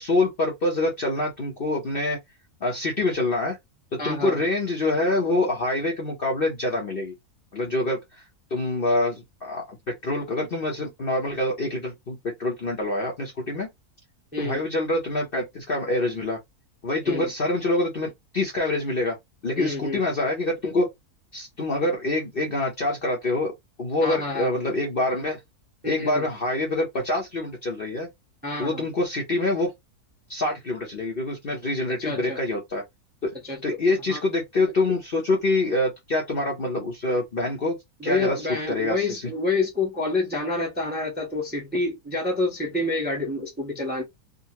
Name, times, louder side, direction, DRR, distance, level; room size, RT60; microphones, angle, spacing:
voice 1, 0.0-2.2 2.6-3.6 4.0-7.1 7.5-8.0 8.5-13.7 14.4-16.4 16.8-19.2 19.4-20.9 21.3-23.5 23.8-25.4 25.8-28.1 28.6-29.7 30.3-32.8 33.2-33.3 33.6-37.8 38.0-39.2, left 2 dB, 45° left, 0.8 m, -25 dB
voice 2, 4.0-4.4 14.3-14.6 17.0-17.3 19.6-20.0 24.0-24.5 25.8-26.2 28.4-28.9 32.0-32.4 33.4-33.8 34.1-34.2 38.0-44.0, left 3 dB, 10° right, 0.8 m, -28 dB
3.7 x 2.2 x 2.9 m
omnidirectional pair, 1.7 m